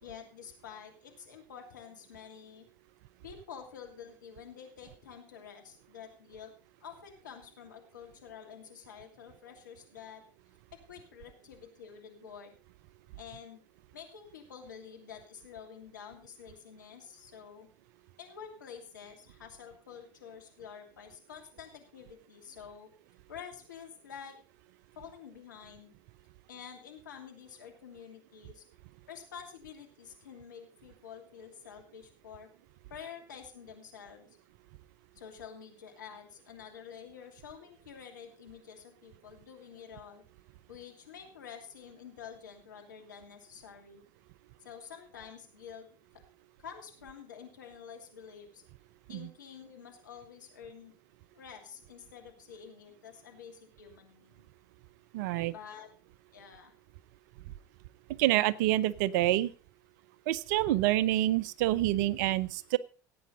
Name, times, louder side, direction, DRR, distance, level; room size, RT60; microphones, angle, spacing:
voice 1, 0.0-2.7 3.2-6.5 6.8-10.2 10.7-12.5 13.2-13.6 13.9-17.7 18.2-22.9 23.3-24.4 25.0-25.9 26.5-28.6 29.1-32.5 32.9-34.3 35.1-40.2 40.7-44.0 44.6-45.9 46.6-48.6 49.1-50.9 51.3-54.5 55.5-55.9 56.3-56.7, left 7 dB, 85° left, 3 dB, 2.8 m, -49 dB
voice 2, 55.1-55.5 58.2-59.5 60.3-62.8, right 15 dB, 70° right, 19 dB, 0.7 m, -27 dB
16.5 x 8.7 x 3.9 m, 0.36 s
hypercardioid pair, 70°, 10 cm